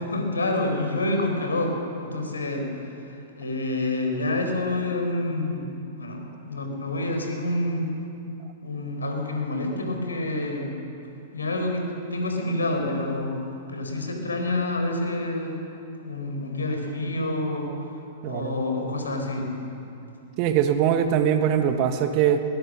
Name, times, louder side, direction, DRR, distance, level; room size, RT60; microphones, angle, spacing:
voice 1, 0.0-2.7 3.4-5.7 6.0-7.9 8.6-10.7 11.3-11.8 12.1-13.3 13.7-15.5 16.0-17.7 18.2-19.5, left 2 dB, 80° left, 4 dB, 4.2 m, -27 dB
voice 2, 18.2-18.5 20.4-22.4, right 9 dB, 40° right, 8 dB, 1.5 m, -22 dB
21.0 x 20.0 x 6.4 m, 2.7 s
figure-of-eight pair, 105°, 0 cm